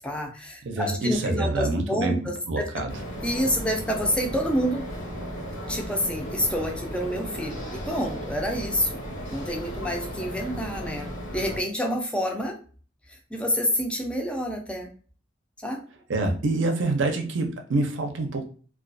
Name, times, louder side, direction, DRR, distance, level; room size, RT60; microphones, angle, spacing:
voice 1, 0.0-2.8 3.2-4.8 5.7-9.0 9.3-12.6 13.1-14.9 15.6-15.8, equal, 5° left, 2 dB, 0.4 m, -28 dB
voice 2, 0.6-2.2 2.5-2.9 16.1-18.5, right 2 dB, 75° right, 3 dB, 0.5 m, -26 dB
sound 1, 2.9-11.6, equal, 70° left, 0.9 m, -35 dB
2.3 x 2.3 x 2.5 m, 0.40 s
head